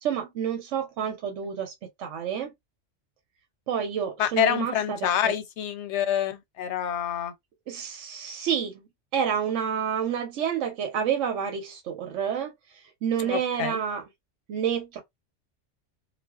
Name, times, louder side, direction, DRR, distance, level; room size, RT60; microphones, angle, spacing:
voice 1, 0.0-2.5 3.7-5.4 7.7-8.8 9.1-14.1 14.5-15.0, right 8 dB, 80° right, 1.0 m, -29 dB
voice 2, 4.2-7.3 13.3-13.8, left 10 dB, 75° left, 0.9 m, -27 dB
2.4 x 2.2 x 2.3 m
omnidirectional pair, 1.2 m